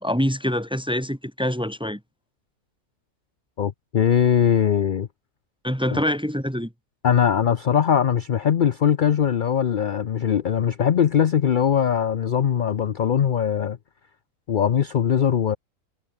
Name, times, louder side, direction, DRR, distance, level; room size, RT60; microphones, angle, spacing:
voice 1, 0.0-2.0 5.6-6.7, equal, 5° right, 1.0 m, -25 dB
voice 2, 3.6-5.1 5.9-6.0 7.0-13.8 14.5-15.6, left 8 dB, 60° left, 0.5 m, -21 dB
omnidirectional pair, 1.6 m